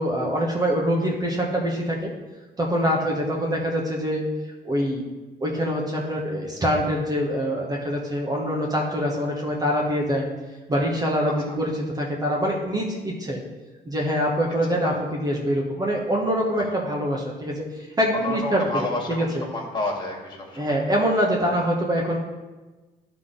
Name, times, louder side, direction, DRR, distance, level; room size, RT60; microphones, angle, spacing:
voice 1, 0.0-2.1 2.6-4.2 4.6-5.1 5.4-10.3 10.7-13.4 13.9-14.9 15.2-18.6 19.1-19.4 20.6-22.2, equal, 20° right, -2 dB, 1.3 m, -24 dB
voice 2, 11.3-11.6 14.8-15.0 16.6-16.7 18.1-20.8 21.5-21.6, left 2 dB, 25° left, 0 dB, 2.0 m, -30 dB
12.0 x 4.0 x 3.8 m, 1.2 s
cardioid pair, 110°, 17 cm